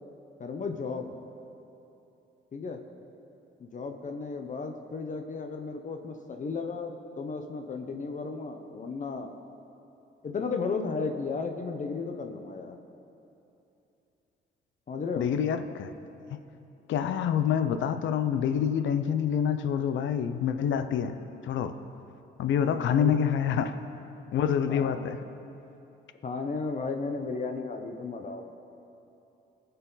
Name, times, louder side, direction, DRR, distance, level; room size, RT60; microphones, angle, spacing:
voice 1, 0.4-1.1 2.5-2.8 3.6-9.4 10.2-12.8 14.9-15.3 22.6-23.4 24.7-25.0 26.2-28.5, left 4 dB, 40° left, 5 dB, 0.8 m, -34 dB
voice 2, 15.2-15.9 16.3-16.4 16.9-21.1 21.4-21.8 22.4-23.8 24.3-25.2, left 8 dB, 70° left, 10 dB, 0.6 m, -27 dB
19.0 x 6.8 x 4.0 m, 2.9 s
cardioid pair, 90°, 20 cm